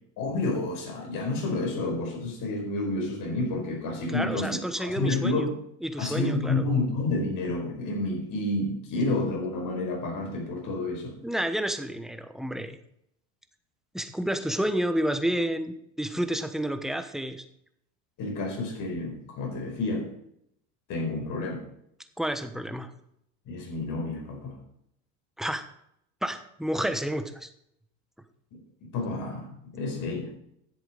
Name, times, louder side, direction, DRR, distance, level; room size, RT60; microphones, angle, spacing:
voice 1, 0.2-4.5 4.8-5.5 6.0-11.2 18.2-20.1 20.9-21.6 23.5-24.5 28.9-30.3, left 2 dB, 55° left, 2 dB, 4.9 m, -29 dB
voice 2, 4.1-5.5 5.8-6.7 11.2-12.8 13.9-17.4 22.2-22.9 25.4-25.7 26.2-27.5, right 1 dB, ahead, 8 dB, 1.1 m, -30 dB
11.0 x 7.9 x 5.0 m, 0.74 s
supercardioid pair, 100°, 37 cm